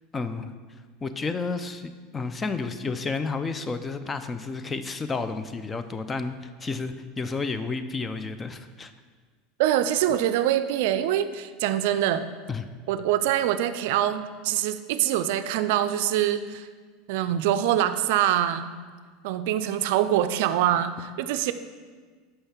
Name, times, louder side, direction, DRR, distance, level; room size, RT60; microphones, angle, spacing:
voice 1, 0.1-0.5 1.0-8.9 12.5-12.6, left 4 dB, 20° left, 10 dB, 0.5 m, -31 dB
voice 2, 9.6-12.3 12.9-16.7 17.1-18.7 19.2-21.5, right 11 dB, 70° right, 11 dB, 0.4 m, -24 dB
5.6 x 5.5 x 5.7 m, 1.5 s
hypercardioid pair, 90°, 0 cm